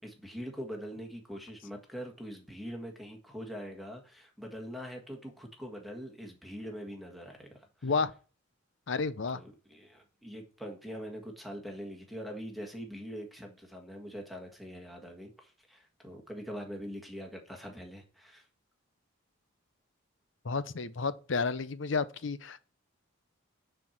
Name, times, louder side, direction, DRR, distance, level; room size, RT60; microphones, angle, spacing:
voice 1, 0.0-7.9 9.3-18.5, equal, ahead, 1.6 m, -43 dB
voice 2, 8.9-9.4 20.4-22.6, left 4 dB, 65° left, 0.6 m, -31 dB
9.7 x 4.6 x 5.9 m
head